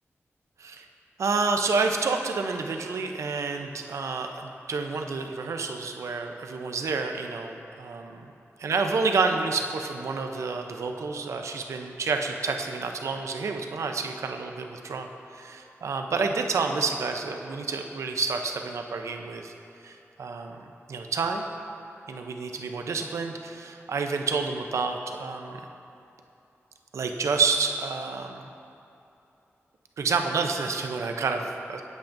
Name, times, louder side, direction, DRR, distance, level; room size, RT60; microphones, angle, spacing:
voice 1, 1.2-8.2 8.6-19.5 19.8-21.4 22.1-25.6 26.9-28.5 30.0-31.8, right 4 dB, 85° right, 4 dB, 0.5 m, -29 dB
8.5 x 8.1 x 2.6 m, 2.7 s
wide cardioid pair, 150°, 5 cm